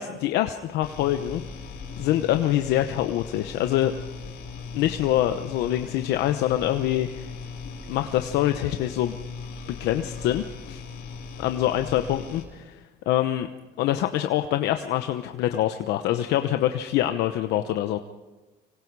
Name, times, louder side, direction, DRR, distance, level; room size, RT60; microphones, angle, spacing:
voice 1, 0.0-1.4 2.0-3.9 4.7-7.3 7.9-9.2 9.7-10.8 11.4-13.5 13.8-18.0, left 13 dB, 85° left, 7 dB, 1.0 m, -25 dB
sound 1, 0.8-12.4, left 4 dB, 70° left, 4.5 m, -38 dB
26.0 x 24.0 x 4.8 m, 1.1 s
cardioid pair, 110°, 17 cm